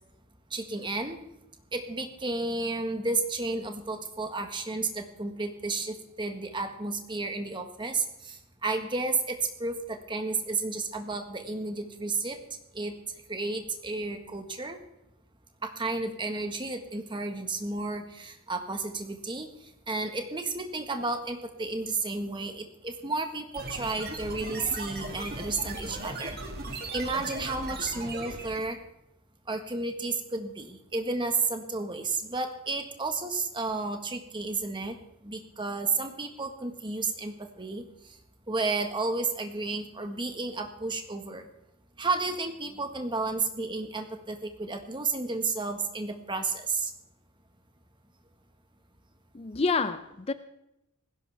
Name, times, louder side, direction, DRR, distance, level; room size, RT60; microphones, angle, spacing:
voice 1, 0.5-1.2 1.7-12.4 12.7-12.9 13.3-14.8 15.6-19.5 19.9-26.4 26.9-28.8 29.5-35.0 35.2-38.1 38.5-41.5 42.0-46.9, right 3 dB, 20° right, 5 dB, 1.5 m, -32 dB
sound 1, 23.5-28.7, right 2 dB, 45° right, 2.7 m, -38 dB
voice 2, 49.3-50.3, left 4 dB, 25° left, 12 dB, 0.5 m, -28 dB
19.5 x 16.5 x 3.5 m, 0.86 s
head